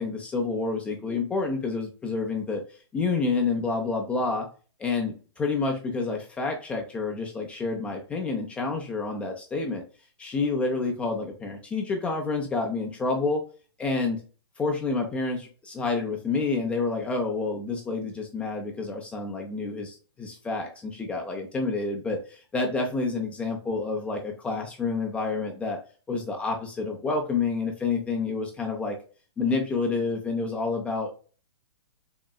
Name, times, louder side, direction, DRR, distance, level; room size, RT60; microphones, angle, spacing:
voice 1, 0.0-2.6 2.9-4.5 4.8-9.8 10.2-13.4 13.8-14.2 14.6-25.8 26.1-29.0 29.4-31.2, left 3 dB, 10° left, 1 dB, 0.3 m, -28 dB
3.6 x 2.0 x 2.2 m, 0.38 s
hypercardioid pair, 145°, 14 cm